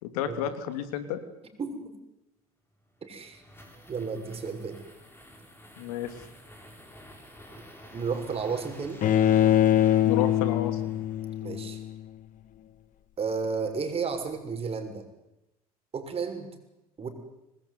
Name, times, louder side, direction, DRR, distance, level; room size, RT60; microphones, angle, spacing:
voice 1, 0.0-1.2 5.8-6.2 10.0-10.8, left 10 dB, 70° left, 10 dB, 2.9 m, -31 dB
voice 2, 1.6-2.0 3.0-3.4 3.9-4.8 7.9-9.0 11.4-11.8 13.2-15.1 15.9-16.5 17.0-17.1, right 5 dB, 30° right, 5 dB, 6.7 m, -32 dB
sound 1, 2.9-11.7, equal, 10° left, 7.5 m, -49 dB
Bowed string instrument, 9.0-12.1, left 11 dB, 45° left, 1.7 m, -23 dB
25.5 x 20.5 x 9.7 m, 0.93 s
hypercardioid pair, 75°, 19 cm